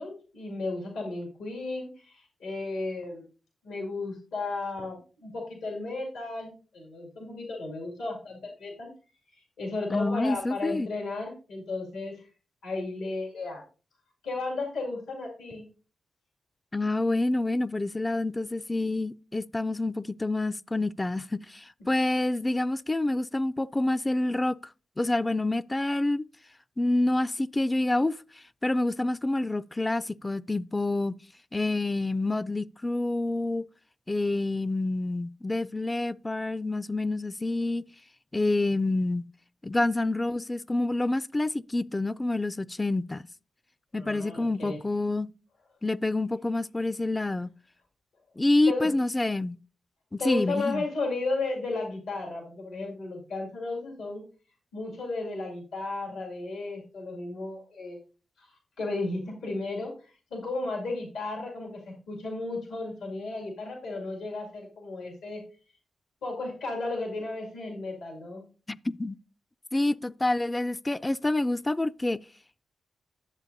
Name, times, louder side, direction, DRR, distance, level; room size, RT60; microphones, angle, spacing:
voice 1, 0.0-3.2 3.6-8.9 9.3-12.2 12.6-13.6 14.2-15.6 43.9-44.8 48.7-48.9 50.2-54.2 54.7-58.0 58.4-65.4 66.2-68.4, left 3 dB, 85° left, 2.1 m, -34 dB
voice 2, 9.9-10.9 16.7-24.6 25.0-26.3 26.8-28.2 28.6-31.2 31.5-33.6 34.1-37.8 38.3-39.3 39.6-43.3 43.9-45.3 45.8-47.5 48.4-49.6 50.1-50.8 68.7-69.2 69.7-72.2, left 2 dB, 25° left, 0.3 m, -27 dB
10.5 x 7.3 x 2.6 m
supercardioid pair, 45°, 0 cm